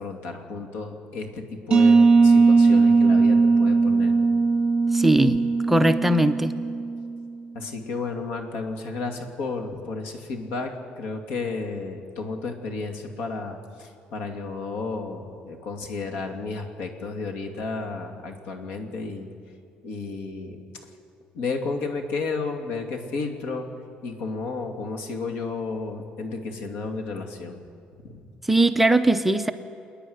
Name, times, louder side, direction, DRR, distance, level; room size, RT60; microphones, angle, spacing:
voice 1, 0.0-4.1 7.5-19.3 19.8-20.6 21.3-23.7 24.0-27.6, left 4 dB, 85° left, 4 dB, 2.5 m, -32 dB
sound 1, 1.7-7.3, right 4 dB, 25° right, 2.0 m, -19 dB
voice 2, 4.9-6.5 28.4-29.5, right 1 dB, 5° right, 8 dB, 0.6 m, -20 dB
28.0 x 10.0 x 9.7 m, 2.5 s
cardioid pair, 155°, 3 cm